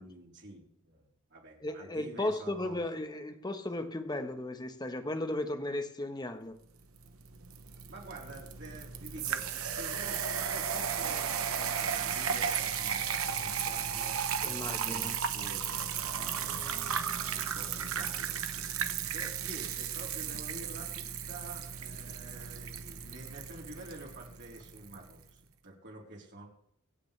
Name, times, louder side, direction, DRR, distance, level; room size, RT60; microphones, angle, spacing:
voice 1, 0.0-2.8 7.9-26.5, right 2 dB, 55° right, 3.8 m, -49 dB
voice 2, 1.6-6.6 14.4-15.2, left 1 dB, 20° left, 1.1 m, -35 dB
sound 1, 7.0-25.0, right 8 dB, 70° right, 1.2 m, -35 dB
sound 2, 15.7-20.8 21.2-21.3, right 1 dB, 90° right, 3.0 m, -51 dB
25.0 x 9.3 x 3.3 m
head